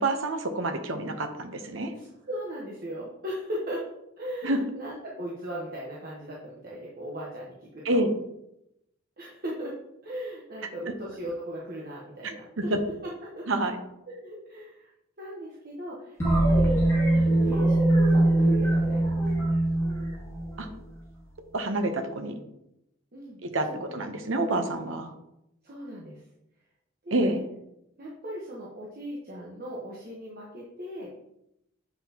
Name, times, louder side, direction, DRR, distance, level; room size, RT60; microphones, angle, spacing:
voice 1, 0.0-1.9 4.4-4.6 7.8-8.1 10.9-11.0 12.2-12.3 12.7-12.8 13.5-13.8 20.6-20.7 21.5-22.3 23.5-25.1 27.1-27.4, right 2 dB, 80° right, 6 dB, 0.9 m, -28 dB
voice 2, 1.9-3.9 4.2-8.0 9.2-9.8 10.0-12.7 13.0-13.5 14.1-14.9 15.2-16.7 17.1-19.4 23.1-23.4 23.7-24.0 25.6-26.2 27.0-27.4 28.0-31.1, equal, 50° right, -5 dB, 1.2 m, -38 dB
sound 1, 16.2-20.9, right 1 dB, 15° left, 1.6 m, -22 dB
8.0 x 5.5 x 2.9 m, 0.84 s
head